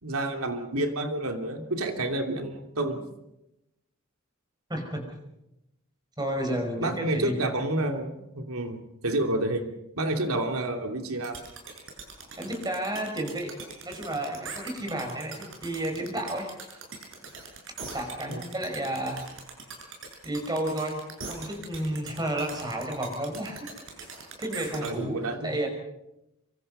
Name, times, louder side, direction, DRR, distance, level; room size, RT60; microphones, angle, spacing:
voice 1, 0.0-3.0 6.5-9.7 10.0-11.4 18.2-18.4 24.8-25.6, right 1 dB, 90° right, 5 dB, 2.9 m, -29 dB
voice 2, 4.7-5.1 6.2-7.5 12.4-13.6 13.8-16.6 17.9-19.3 20.2-23.7 24.4-25.7, right 1 dB, 20° right, 3 dB, 5.5 m, -32 dB
sound 1, 11.2-24.9, right 4 dB, 65° right, 6.9 m, -41 dB
26.0 x 24.0 x 5.6 m, 0.89 s
head